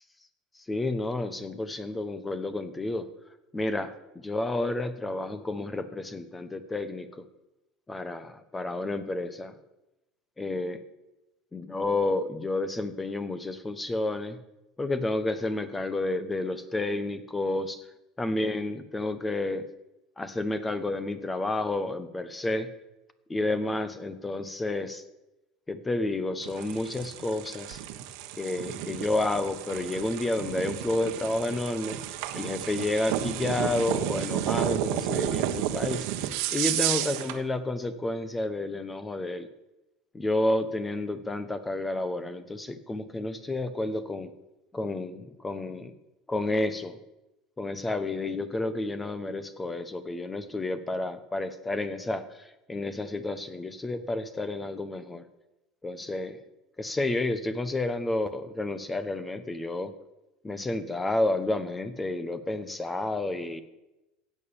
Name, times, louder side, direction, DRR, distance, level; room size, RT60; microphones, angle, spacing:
voice 1, 0.5-3.0 3.5-7.2 7.9-9.5 10.4-10.8 11.5-14.4 14.8-17.8 18.2-19.6 20.2-22.7 23.3-25.0 25.7-27.8 28.4-32.0 32.3-39.5 40.1-44.3 44.7-45.9 46.3-47.0 47.6-55.2 55.8-56.3 56.8-59.9 60.4-63.6, left 2 dB, 15° left, 12 dB, 1.2 m, -30 dB
sound 1, 26.4-37.4, right 12 dB, 75° right, 1.4 m, -32 dB
16.0 x 9.1 x 7.1 m, 0.95 s
supercardioid pair, 130°, 0 cm